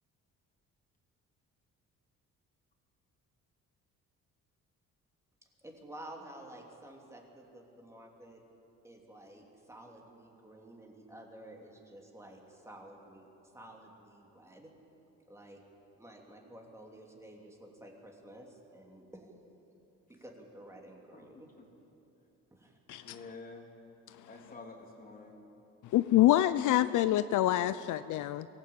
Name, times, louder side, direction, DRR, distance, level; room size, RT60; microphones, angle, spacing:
voice 1, 5.6-8.4 8.8-14.7 15.3-15.6 16.0-19.3 20.1-21.5 22.5-22.8, right 1 dB, 10° right, 0 dB, 2.8 m, -51 dB
voice 2, 21.1-21.4 23.0-23.7 24.3-25.4, left 3 dB, 30° left, 0 dB, 3.4 m, -49 dB
voice 3, 25.9-28.5, left 14 dB, 75° left, 14 dB, 0.6 m, -26 dB
24.0 x 17.0 x 8.6 m, 2.9 s
cardioid pair, 150°, 31 cm